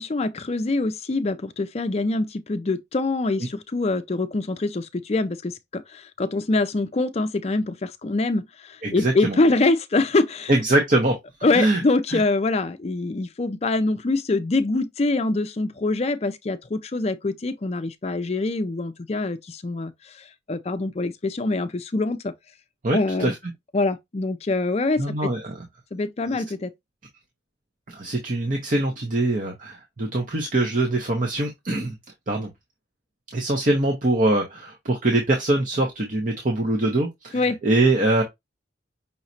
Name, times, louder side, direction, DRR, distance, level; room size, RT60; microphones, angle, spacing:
voice 1, 0.0-10.5 11.4-22.3 22.9-23.3 23.7-25.3 25.9-26.7 37.3-37.6, left 2 dB, 35° left, 0.5 m, -24 dB
voice 2, 8.8-9.4 10.5-11.2 11.5-11.8 12.1-12.2 22.8-23.4 25.0-25.6 26.3-26.4 27.9-31.9 32.3-32.5 33.3-38.2, right 2 dB, 45° right, 1.0 m, -23 dB
5.7 x 3.1 x 2.7 m
head